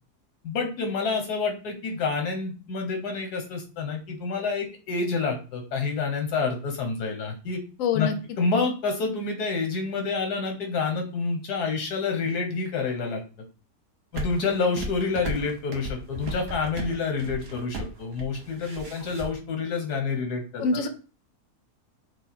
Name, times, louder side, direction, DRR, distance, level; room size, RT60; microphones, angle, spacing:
voice 1, 0.4-7.6 7.9-8.1 8.4-13.2 14.1-20.7, left 4 dB, 85° left, 4 dB, 1.6 m, -28 dB
voice 2, 7.8-8.1 20.6-20.9, left 5 dB, 65° left, 8 dB, 1.0 m, -24 dB
sound 1, 14.1-19.3, right 2 dB, 45° right, 1.2 m, -35 dB
5.0 x 2.2 x 4.2 m, 0.34 s
omnidirectional pair, 1.6 m